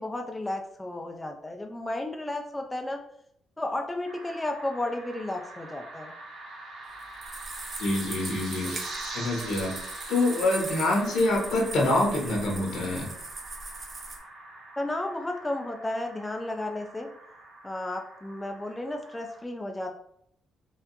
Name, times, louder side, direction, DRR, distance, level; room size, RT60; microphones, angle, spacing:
voice 1, 0.0-3.0 3.6-6.1 8.6-8.8 14.8-17.1 17.6-19.9, left 1 dB, 15° left, 3 dB, 0.4 m, -33 dB
sound 1, 4.0-19.4, right 2 dB, 75° right, 0.9 m, -43 dB
sound 2, 7.0-14.2, right 2 dB, 45° right, 0.8 m, -40 dB
voice 2, 7.8-9.8 10.1-13.1, left 2 dB, 75° left, -1 dB, 1.3 m, -26 dB
4.3 x 2.5 x 2.7 m, 0.71 s
cardioid pair, 90°, 0 cm